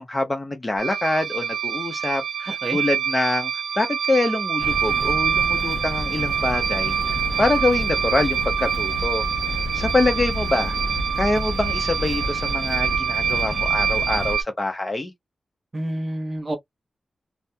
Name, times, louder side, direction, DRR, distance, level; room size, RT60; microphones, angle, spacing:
voice 1, 0.0-3.5 3.8-6.9 7.4-9.2 9.7-10.8 11.2-15.1, left 2 dB, 20° left, 0.6 m, -25 dB
sound 1, 0.8-14.4, right 8 dB, 80° right, 0.4 m, -25 dB
voice 2, 2.5-2.8 15.7-16.6, right 1 dB, 30° right, 0.7 m, -28 dB
sound 2, 4.6-14.4, left 2 dB, 65° left, 0.5 m, -31 dB
2.3 x 2.1 x 2.6 m
wide cardioid pair, 170°, 0 cm